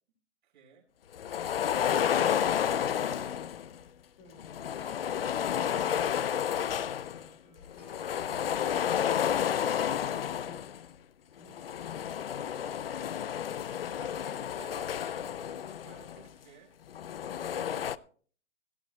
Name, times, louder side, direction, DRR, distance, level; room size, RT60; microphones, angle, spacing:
voice 1, 0.4-0.8 1.7-2.2 2.5-3.1 13.5-16.7 17.3-17.9, right 8 dB, 40° right, 1 dB, 4.4 m, -54 dB
sound 1, 1.1-3.8 4.4-7.3 7.6-10.8 11.5-16.3 16.9-18.0, left 9 dB, 50° left, 0.4 m, -31 dB
voice 2, 4.2-8.1 11.3-12.1, left 1 dB, 25° left, 0 dB, 2.4 m, -57 dB
Alarm, 4.8-9.6, right 6 dB, 5° right, 1.0 m, -64 dB
17.0 x 16.5 x 2.2 m, 0.43 s
hypercardioid pair, 170°, 37 cm